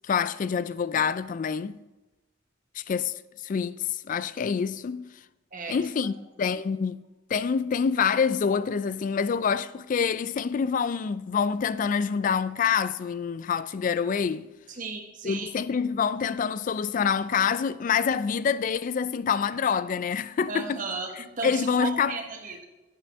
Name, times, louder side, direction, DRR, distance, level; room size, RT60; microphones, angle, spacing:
voice 1, 0.1-1.8 2.8-3.1 3.4-3.8 4.0-5.1 5.7-7.0 7.3-14.5 15.2-20.8 21.4-22.2, left 6 dB, 45° left, 0.3 m, -26 dB
voice 2, 5.5-5.8 14.7-15.5 20.5-22.6, right 4 dB, 45° right, 1.3 m, -35 dB
10.0 x 9.4 x 3.5 m
head